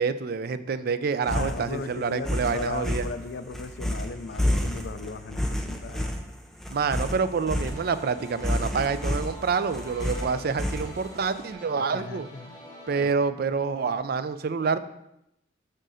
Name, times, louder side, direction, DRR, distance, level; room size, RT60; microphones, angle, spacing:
voice 1, 0.0-3.1 6.7-12.3 12.9-14.8, right 5 dB, 55° right, 12 dB, 0.4 m, -27 dB
sound 1, 1.2-11.3, left 1 dB, ahead, 0.6 m, -30 dB
voice 2, 1.3-6.1 11.9-12.6 13.0-13.1, left 3 dB, 65° left, 11 dB, 0.5 m, -37 dB
sound 2, 7.6-13.1, equal, 20° left, 1.3 m, -45 dB
6.6 x 3.8 x 6.3 m, 0.83 s
head